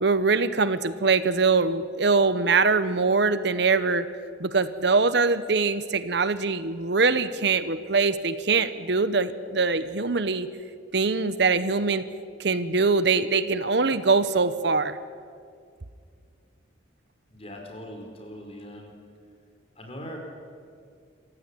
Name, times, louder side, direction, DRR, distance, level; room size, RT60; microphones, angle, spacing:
voice 1, 0.0-4.1 4.4-10.5 10.9-12.0 12.4-15.0, right 4 dB, 60° right, 13 dB, 0.9 m, -23 dB
voice 2, 17.3-19.0 19.7-20.2, equal, 30° left, 2 dB, 4.8 m, -41 dB
26.5 x 15.5 x 9.9 m, 2.2 s
head